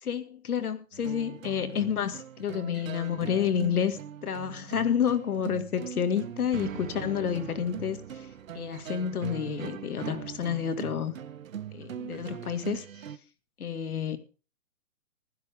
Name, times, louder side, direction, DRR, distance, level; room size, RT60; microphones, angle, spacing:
voice 1, 0.0-8.3 8.5-11.1 11.7-12.9 13.6-14.2, left 8 dB, 80° left, 10 dB, 2.2 m, -30 dB
sound 1, 0.9-13.2, right 9 dB, 65° right, 1.2 m, -41 dB
15.5 x 13.5 x 3.6 m, 0.36 s
hypercardioid pair, 175°, 43 cm